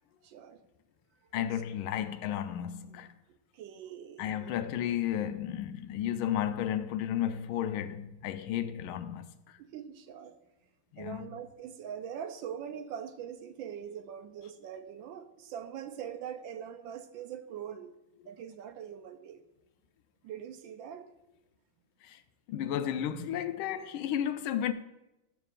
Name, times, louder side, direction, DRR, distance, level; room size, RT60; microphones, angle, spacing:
voice 1, 0.2-0.6 1.3-1.5 3.5-4.6 9.6-10.4 11.0-17.9 18.2-19.4 20.2-21.1, right 8 dB, 75° right, 1.3 m, -42 dB
voice 2, 1.3-3.1 4.2-9.6 10.9-11.3 22.0-22.2 22.5-24.7, left 10 dB, 80° left, 1.4 m, -33 dB
13.0 x 7.0 x 2.4 m
omnidirectional pair, 2.3 m